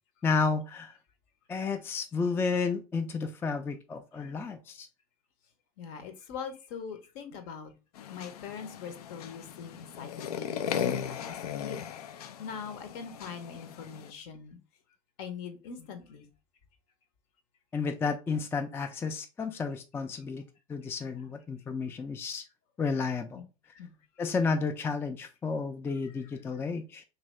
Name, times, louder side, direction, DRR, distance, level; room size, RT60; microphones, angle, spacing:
voice 1, 0.2-0.9 1.5-4.9 17.7-20.4 20.7-22.4 22.8-23.5 24.2-27.0, left 4 dB, 10° left, 0.3 m, -31 dB
voice 2, 5.8-7.7 8.1-11.8 12.1-14.6 15.2-16.3 23.3-23.4 23.8-23.9 26.0-26.1, left 6 dB, 55° left, 0.8 m, -42 dB
sound 1, 7.9-14.1, left 8 dB, 85° left, 0.4 m, -37 dB
2.8 x 2.7 x 3.1 m
hypercardioid pair, 100°, 19 cm